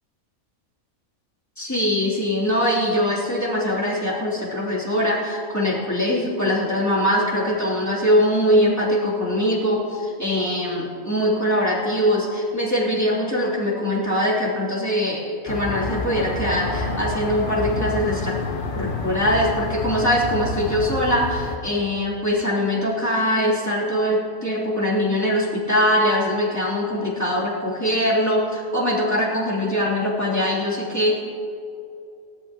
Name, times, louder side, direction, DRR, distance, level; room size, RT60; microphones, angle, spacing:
voice 1, 1.6-18.4 18.7-31.2, equal, 10° left, -7 dB, 3.3 m, -22 dB
sound 1, 15.5-21.6, left 3 dB, 40° left, 1.0 m, -29 dB
19.5 x 13.0 x 3.0 m, 2.6 s
omnidirectional pair, 1.5 m